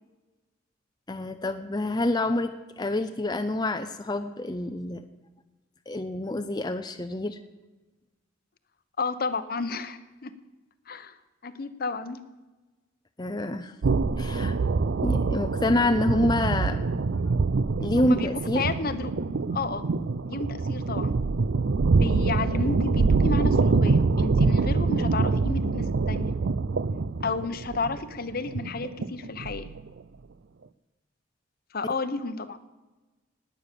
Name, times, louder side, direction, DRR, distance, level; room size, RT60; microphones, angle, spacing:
voice 1, 1.1-5.1 5.9-7.4 13.2-13.7 14.2-14.5 15.0-16.8 17.8-18.7, left 1 dB, 20° left, 7 dB, 0.6 m, -27 dB
voice 2, 9.0-10.3 10.9-11.2 11.4-12.2 18.0-18.3 18.5-19.1 19.5-19.9 20.3-21.1 22.0-26.4 27.2-29.7 31.7-32.6, left 4 dB, 50° left, 12 dB, 0.9 m, -31 dB
sound 1, 13.8-30.0, right 4 dB, 65° right, 0.5 m, -25 dB
19.0 x 8.8 x 6.9 m, 1.2 s
head